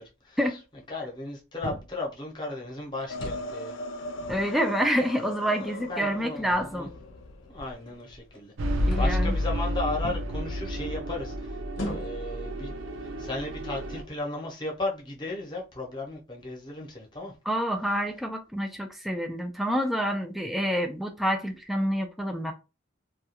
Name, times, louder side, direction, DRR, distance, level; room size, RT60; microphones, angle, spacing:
voice 1, 0.2-0.6 0.9-3.8 5.6-6.9 7.5-12.7 13.0-17.3, left 2 dB, 20° left, 0.8 m, -35 dB
sound 1, 1.6-2.0 3.0-3.5 4.0-5.1 5.8-5.9 6.4-8.4 8.8-9.3 10.0-10.3 11.7-12.3 13.0-13.2 13.7-14.2, left 1 dB, 85° left, 0.8 m, -40 dB
sound 2, 3.1-7.9, left 2 dB, 70° left, 0.4 m, -39 dB
voice 2, 4.3-6.9 8.8-9.3 17.5-22.5, equal, ahead, 0.3 m, -28 dB
sound 3, 8.6-14.0, equal, 80° right, 0.5 m, -30 dB
2.3 x 2.2 x 2.8 m
head